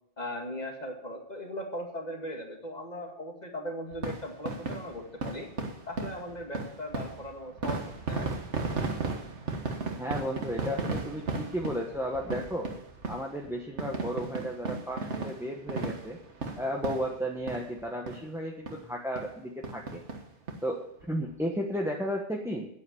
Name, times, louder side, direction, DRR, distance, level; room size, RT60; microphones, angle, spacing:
voice 1, 0.2-5.5 5.9-8.3, equal, 40° left, 1 dB, 2.3 m, -38 dB
sound 1, 3.9-17.8 18.1-18.2 18.7-18.8 19.2-19.3 19.6-20.6 21.0-21.1 21.3-21.4, right 3 dB, 90° right, 1.8 m, -35 dB
voice 2, 9.9-12.7 13.1-16.2 16.6-20.0 20.6-22.7, equal, 5° right, 0 dB, 1.2 m, -34 dB
9.8 x 8.5 x 7.7 m, 0.77 s
omnidirectional pair, 1.2 m